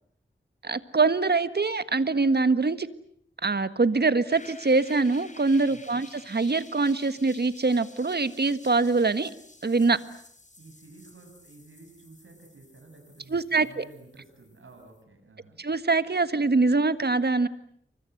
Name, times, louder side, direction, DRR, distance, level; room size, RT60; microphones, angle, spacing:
voice 1, 0.6-2.9 3.4-9.3 9.6-10.0 13.3-13.8 15.6-17.5, right 3 dB, 55° right, 12 dB, 1.6 m, -24 dB
sound 1, 4.3-15.0, left 2 dB, 40° left, 4.5 m, -52 dB
voice 2, 5.7-6.0 10.6-15.6, right 3 dB, 85° right, 4 dB, 6.7 m, -52 dB
29.0 x 24.5 x 7.9 m, 0.67 s
wide cardioid pair, 55°, 20 cm